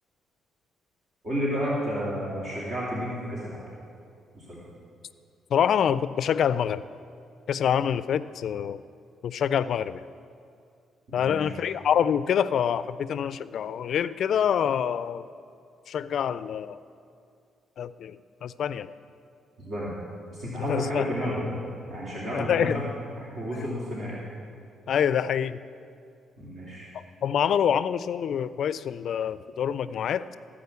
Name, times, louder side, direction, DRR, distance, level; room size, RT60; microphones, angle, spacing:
voice 1, 1.2-3.6 4.3-4.6 11.1-11.6 19.6-19.9 20.3-21.4 21.9-22.9 23.2-24.2 26.4-26.9, equal, 55° right, -7 dB, 2.8 m, -31 dB
voice 2, 5.5-6.8 7.5-8.8 9.2-10.0 11.1-15.3 15.9-16.8 17.8-18.9 20.7-21.1 22.3-22.8 24.9-25.6 26.9-30.4, left 8 dB, 65° left, 15 dB, 0.4 m, -26 dB
14.5 x 5.1 x 8.2 m, 2.4 s
cardioid pair, 90°, 0 cm